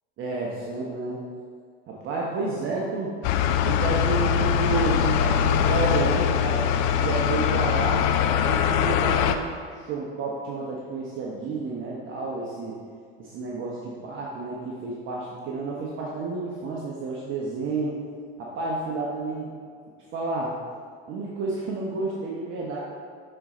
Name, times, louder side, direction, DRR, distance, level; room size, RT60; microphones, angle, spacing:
voice 1, 0.2-1.2 1.9-3.3 3.6-8.1 8.4-12.8 13.2-17.9 18.4-19.5 20.1-20.5 21.1-22.8, right 3 dB, 45° right, -4 dB, 1.0 m, -30 dB
sound 1, 3.2-9.4, left 8 dB, 60° left, 0.5 m, -22 dB
6.7 x 4.3 x 3.8 m, 2.1 s
hypercardioid pair, 90°, 29 cm